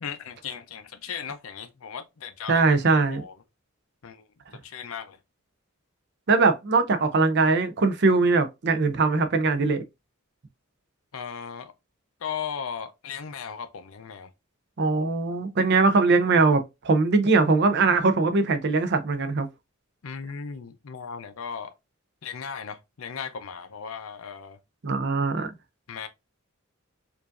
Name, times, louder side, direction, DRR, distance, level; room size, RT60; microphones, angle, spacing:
voice 1, 0.0-3.4 4.0-4.2 4.6-5.2 11.1-11.7 12.2-14.3 20.0-21.7 22.2-24.6 25.9-26.1, left 7 dB, 70° left, 0.5 m, -37 dB
voice 2, 2.5-3.2 6.3-9.8 14.8-19.5 24.8-25.5, right 3 dB, 50° right, 0.6 m, -21 dB
4.7 x 2.6 x 2.5 m
head